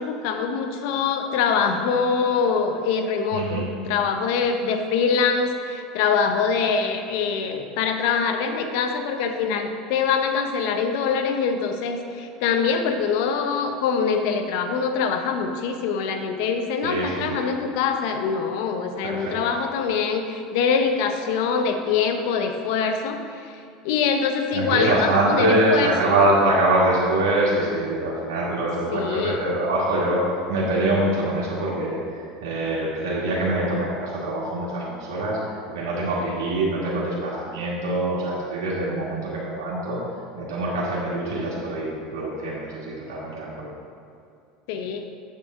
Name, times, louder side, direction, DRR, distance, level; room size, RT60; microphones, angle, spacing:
voice 1, 0.0-23.5 23.8-26.1 28.9-29.4 44.7-45.0, left 5 dB, 70° left, 6 dB, 0.8 m, -24 dB
voice 2, 3.3-3.6 16.8-17.4 19.0-19.6 24.5-30.2 30.5-40.0 40.3-43.7, right 1 dB, 80° right, -6 dB, 1.8 m, -24 dB
8.2 x 7.8 x 3.7 m, 2.4 s
supercardioid pair, 100°, 2 cm